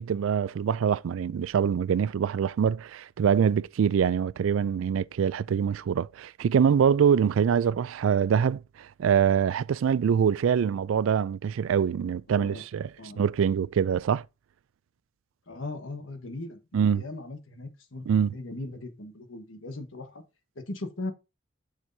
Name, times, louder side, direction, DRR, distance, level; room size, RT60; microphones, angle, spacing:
voice 1, 0.0-12.9 13.2-14.2 16.7-17.0 18.1-18.3, right 7 dB, 85° right, 0.3 m, -24 dB
voice 2, 12.3-12.6 13.0-13.2 15.5-20.2 20.5-21.1, left 2 dB, 75° left, 1.3 m, -39 dB
7.2 x 6.3 x 2.7 m
head